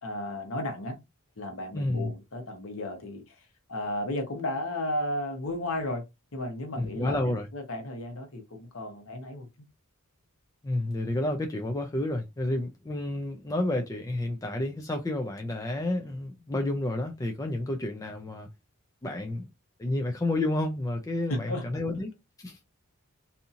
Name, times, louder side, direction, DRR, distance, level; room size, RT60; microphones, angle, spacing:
voice 1, 0.0-1.0 1.4-6.0 6.3-9.5 19.1-19.2 21.3-21.6, left 1 dB, 65° left, 1.0 m, -34 dB
voice 2, 1.7-2.1 6.8-7.5 10.6-18.5 19.0-19.5 19.8-22.1 22.4-22.6, left 1 dB, 15° left, 0.3 m, -30 dB
2.7 x 2.7 x 2.4 m
head